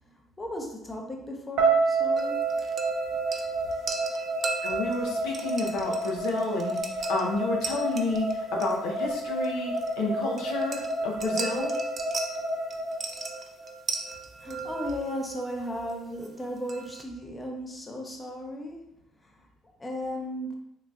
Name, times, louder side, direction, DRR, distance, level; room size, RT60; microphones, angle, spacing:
voice 1, 0.0-2.6 14.4-18.9 19.2-19.3 19.8-20.6, left 1 dB, 20° left, 1 dB, 0.6 m, -36 dB
sound 1, 1.6-13.7, right 2 dB, 80° right, 0.8 m, -30 dB
sound 2, 2.2-17.0, right 4 dB, 40° right, 0.4 m, -38 dB
voice 2, 4.6-11.7, left 2 dB, 90° left, -1 dB, 0.6 m, -30 dB
3.7 x 2.6 x 2.3 m, 0.78 s
cardioid pair, 85°, 0 cm